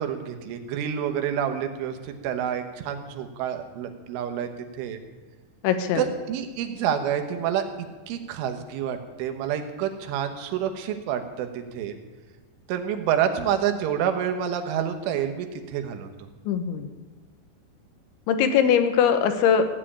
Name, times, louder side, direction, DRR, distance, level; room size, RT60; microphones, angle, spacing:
voice 1, 0.0-4.5 4.7-5.0 6.0-7.6 8.1-12.0 12.7-16.1, right 9 dB, 80° right, 7 dB, 3.6 m, -28 dB
voice 2, 5.6-6.0 16.5-16.9 18.3-19.7, left 7 dB, 75° left, 8 dB, 3.3 m, -21 dB
16.0 x 7.6 x 10.0 m, 1.3 s
omnidirectional pair, 5.6 m